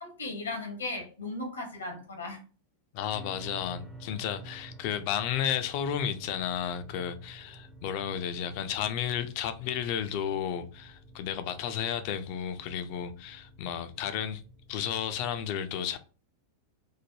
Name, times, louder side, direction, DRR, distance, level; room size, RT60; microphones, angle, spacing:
voice 1, 0.0-2.4, left 2 dB, 70° left, 0.8 m, -36 dB
voice 2, 2.9-14.4 14.7-16.0, left 9 dB, 45° left, 0.3 m, -33 dB
sound 1, 3.1-15.4, right 1 dB, 15° right, 0.5 m, -51 dB
3.2 x 2.1 x 2.6 m
figure-of-eight pair, 90°, 0 cm